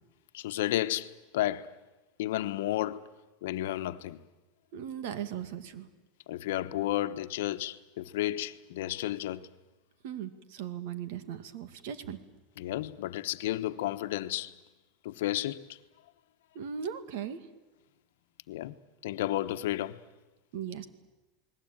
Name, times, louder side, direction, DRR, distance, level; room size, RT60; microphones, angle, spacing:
voice 1, 0.3-1.7 2.2-3.0 3.4-4.2 6.3-9.5 12.6-14.5 15.0-15.8 18.5-18.8 19.0-20.0, left 14 dB, 80° left, 1.1 m, -32 dB
voice 2, 4.7-5.9 10.0-12.2 16.5-17.5 20.5-20.9, right 8 dB, 65° right, 2.2 m, -38 dB
29.5 x 20.0 x 9.0 m
supercardioid pair, 165°, 0 cm